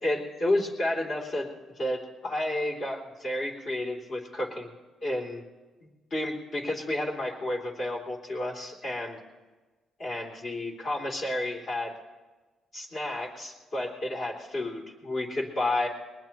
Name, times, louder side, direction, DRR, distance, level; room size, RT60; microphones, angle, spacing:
voice 1, 0.0-1.5 1.8-4.7 5.0-5.4 5.8-9.2 10.0-11.9 12.7-15.9, left 1 dB, 50° left, -1 dB, 3.0 m, -31 dB
21.0 x 19.5 x 3.0 m, 1.3 s
cardioid pair, 90°, 0 cm